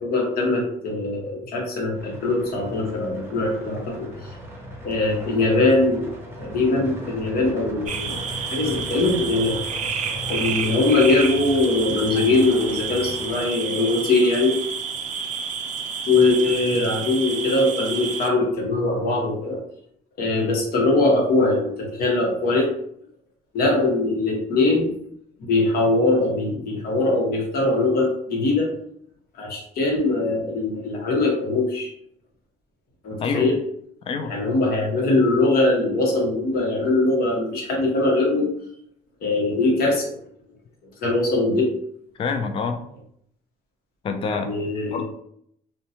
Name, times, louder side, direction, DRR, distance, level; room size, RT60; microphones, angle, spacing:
voice 1, 0.0-4.1 4.8-6.1 6.4-8.2 8.5-9.6 9.9-10.0 10.3-14.6 16.1-19.6 20.2-22.7 23.5-24.9 25.4-28.7 29.4-31.9 33.0-33.6 34.3-38.5 39.2-40.1 41.0-41.7 44.3-45.0, left 2 dB, 65° left, -1 dB, 0.9 m, -21 dB
sound 1, 1.9-13.4, equal, 15° right, 0.7 m, -38 dB
sound 2, 7.9-18.3, right 6 dB, 50° right, 0.4 m, -30 dB
voice 2, 33.2-33.5 34.1-34.3 42.2-42.8 44.0-44.5 44.9-45.0, left 5 dB, 35° left, 6 dB, 0.3 m, -26 dB
2.6 x 2.1 x 2.7 m, 0.69 s
cardioid pair, 110°, 17 cm